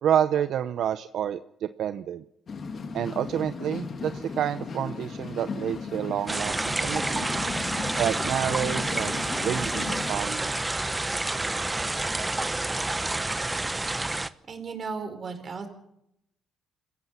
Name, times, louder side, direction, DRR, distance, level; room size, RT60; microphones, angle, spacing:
voice 1, 0.0-2.2 2.9-7.5 8.0-10.5, right 10 dB, 75° right, 12 dB, 0.7 m, -29 dB
sound 1, 2.5-10.1, left 4 dB, 50° left, 2.3 m, -36 dB
sound 2, 6.3-14.3, right 2 dB, 15° right, 1.0 m, -29 dB
voice 2, 14.5-15.7, right 5 dB, 45° right, 7 dB, 5.0 m, -35 dB
29.0 x 15.5 x 5.8 m, 0.77 s
cardioid pair, 90°, 0 cm